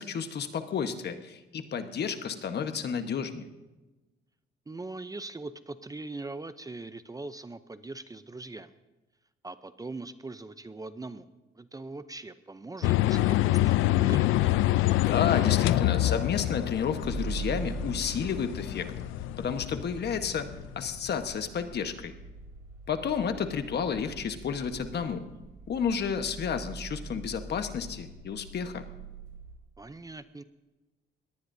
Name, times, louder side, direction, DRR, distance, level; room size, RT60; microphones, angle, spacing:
voice 1, 0.0-3.5 15.1-18.9 19.4-20.5 20.8-22.1 22.9-25.3 25.7-28.8, left 7 dB, 55° left, 8 dB, 1.3 m, -31 dB
voice 2, 4.7-8.7 9.4-11.3 11.5-14.5 29.8-30.4, right 3 dB, 20° right, 12 dB, 0.6 m, -41 dB
sound 1, 12.8-20.9, left 16 dB, 90° left, 0.5 m, -26 dB
sound 2, 17.0-29.6, right 3 dB, 85° right, 3.5 m, -43 dB
22.0 x 18.0 x 2.7 m, 1.1 s
cardioid pair, 90°, 20 cm